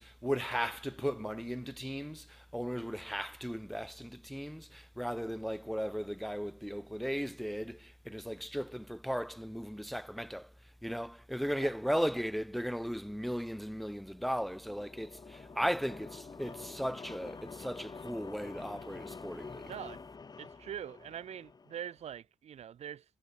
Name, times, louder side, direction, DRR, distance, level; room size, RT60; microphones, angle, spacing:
voice 1, 0.0-10.5 10.8-19.7, equal, ahead, 1.7 m, -36 dB
sound 1, 14.1-22.0, left 4 dB, 35° left, 6.7 m, -48 dB
voice 2, 19.6-20.0 20.4-23.0, right 9 dB, 75° right, 6.4 m, -43 dB
cardioid pair, 100°, 11 cm